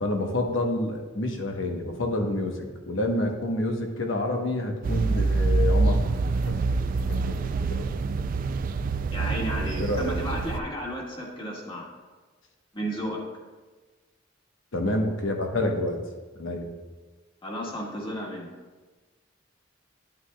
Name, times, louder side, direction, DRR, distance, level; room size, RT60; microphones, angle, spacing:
voice 1, 0.0-6.0 6.5-6.6 7.1-7.8 9.8-10.2 14.7-16.0 16.4-16.7, left 1 dB, 75° left, 3 dB, 1.0 m, -28 dB
sound 1, 4.8-10.6, right 3 dB, 45° right, 0.3 m, -25 dB
voice 2, 9.1-11.9 12.7-13.2 17.4-18.5, equal, 25° left, -3 dB, 1.6 m, -33 dB
9.9 x 8.8 x 2.3 m, 1.3 s
head